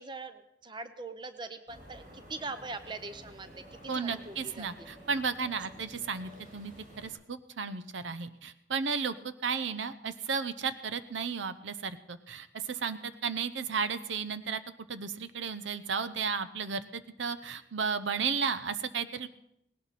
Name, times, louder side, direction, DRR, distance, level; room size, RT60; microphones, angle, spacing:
voice 1, 0.0-3.5 3.8-4.9, right 3 dB, 25° right, 10 dB, 0.8 m, -42 dB
sound 1, 1.7-7.1, equal, 45° right, 4.6 m, -52 dB
voice 2, 3.9-14.6 14.9-19.3, right 5 dB, 85° right, 12 dB, 0.8 m, -34 dB
18.5 x 18.0 x 4.2 m, 0.80 s
head